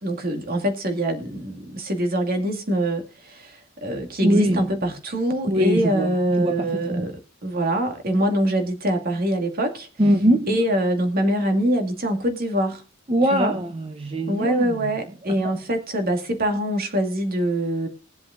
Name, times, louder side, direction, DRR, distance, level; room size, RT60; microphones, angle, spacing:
voice 1, 0.0-9.9 10.5-12.8 13.3-13.5 14.3-17.9, right 1 dB, 45° right, 2.2 m, -24 dB
voice 2, 4.2-4.6 5.5-7.1 10.0-10.5 13.1-14.9 15.4-15.5, equal, 30° right, 1.1 m, -22 dB
21.0 x 7.5 x 2.6 m
head